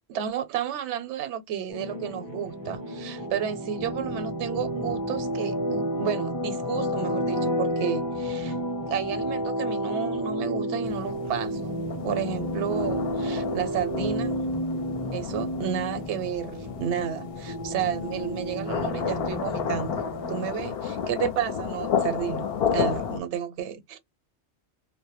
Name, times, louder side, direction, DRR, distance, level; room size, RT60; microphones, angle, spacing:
voice 1, 0.1-8.6 8.9-14.4 15.1-20.0 20.3-24.0, right 9 dB, 80° right, 0.9 m, -32 dB
sound 1, 1.7-20.5, equal, 25° left, 0.6 m, -31 dB
sound 2, 10.9-23.2, left 7 dB, 65° left, 0.7 m, -32 dB
2.1 x 2.1 x 2.9 m
omnidirectional pair, 1.2 m